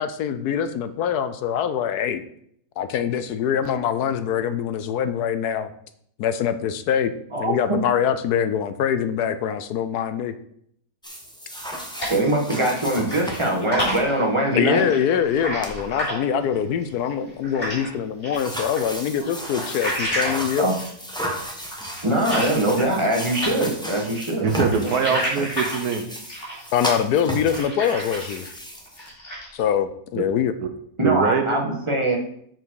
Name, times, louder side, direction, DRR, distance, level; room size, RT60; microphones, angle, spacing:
voice 1, 0.0-2.2 2.8-5.7 6.2-10.3 14.5-20.7 26.7-28.5 29.5-30.5, left 8 dB, 75° left, 11 dB, 1.2 m, -24 dB
voice 2, 7.3-7.8 12.1-14.8 20.6-20.8 22.0-24.5 31.0-32.2, right 1 dB, 20° right, 0 dB, 1.5 m, -22 dB
sound 1, 11.0-14.0 15.3-15.4 15.6-15.8 18.3-29.1, equal, 5° left, 1.1 m, -33 dB
sound 2, 11.5-12.8 13.0-17.9 18.2-23.1 23.4-28.5 28.9-29.6, equal, 35° left, 3.2 m, -31 dB
voice 3, 24.4-26.0 30.2-30.3 30.6-30.7 31.0-31.6, right 6 dB, 75° right, 8 dB, 1.3 m, -23 dB
7.0 x 6.2 x 4.7 m, 0.67 s
omnidirectional pair, 1.7 m